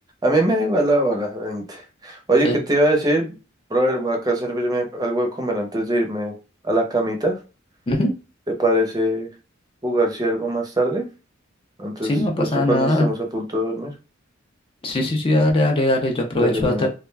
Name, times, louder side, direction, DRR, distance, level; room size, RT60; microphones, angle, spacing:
voice 1, 0.2-3.3 3.7-6.3 6.6-7.4 8.6-9.3 9.8-11.0 11.8-12.1 12.4-13.9 16.3-16.9, right 1 dB, 20° right, 2 dB, 0.6 m, -22 dB
voice 2, 12.0-13.1 14.8-16.9, left 1 dB, 25° left, 2 dB, 0.5 m, -20 dB
2.3 x 2.1 x 3.3 m, 0.31 s
head